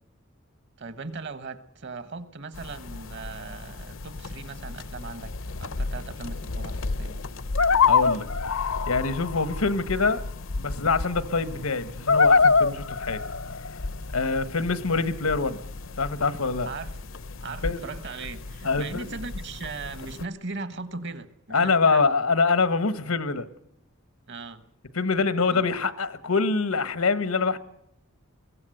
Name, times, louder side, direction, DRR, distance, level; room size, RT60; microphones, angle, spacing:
voice 1, 0.8-7.2 16.6-16.9 17.4-22.0 24.3-24.7 25.5-25.6, right 3 dB, 55° right, 1.3 m, -38 dB
sound 1, 2.5-20.3, left 4 dB, 65° left, 0.7 m, -28 dB
voice 2, 7.9-10.2 10.6-13.2 14.1-15.6 16.0-16.7 17.6-17.8 18.6-19.0 21.5-23.5 24.9-27.6, left 4 dB, 90° left, 1.3 m, -25 dB
22.5 x 17.0 x 7.8 m
head